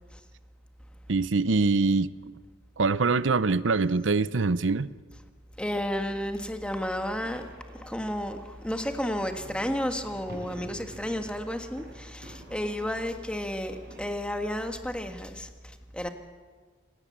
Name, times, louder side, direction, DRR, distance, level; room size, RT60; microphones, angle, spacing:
voice 1, 1.1-2.1 2.8-4.9, right 3 dB, 85° right, 16 dB, 0.7 m, -24 dB
voice 2, 5.6-7.5 7.7-16.1, equal, 5° left, 6 dB, 1.5 m, -32 dB
sound 1, 7.0-14.0, right 1 dB, 55° right, 6.6 m, -49 dB
26.5 x 18.5 x 7.4 m, 1.5 s
head